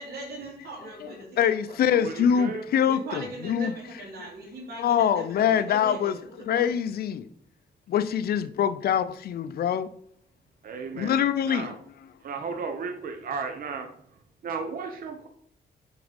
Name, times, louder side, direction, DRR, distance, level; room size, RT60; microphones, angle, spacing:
voice 1, 0.0-1.8 2.8-6.7, right 2 dB, 75° right, 2.9 m, -40 dB
voice 2, 1.0-3.7 4.8-6.2 6.5-7.3 7.9-9.9 10.9-11.7, left 8 dB, 70° left, 0.5 m, -24 dB
voice 3, 1.9-2.6 10.6-11.8 12.2-13.9 14.4-15.3, right 5 dB, 60° right, 1.0 m, -34 dB
8.3 x 4.0 x 5.2 m
cardioid pair, 120°, 17 cm